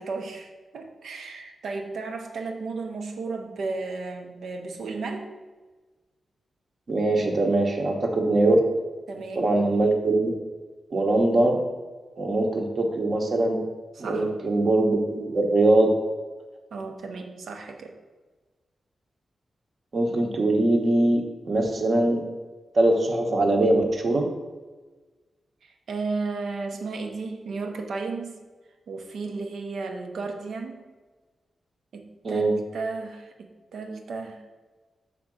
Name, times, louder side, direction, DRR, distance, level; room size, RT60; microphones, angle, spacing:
voice 1, 0.0-5.3 9.1-9.5 14.0-14.3 16.7-17.9 25.6-28.4 28.9-30.9 31.9-33.3 33.7-34.4, right 3 dB, 80° right, 4 dB, 0.9 m, -34 dB
voice 2, 6.9-8.6 9.3-10.3 10.9-11.6 12.2-13.6 14.0-16.0 19.9-22.2 22.7-24.3 32.2-32.5, right 2 dB, 40° right, 2 dB, 1.0 m, -22 dB
6.7 x 3.8 x 6.1 m, 1.3 s
wide cardioid pair, 170°, 0 cm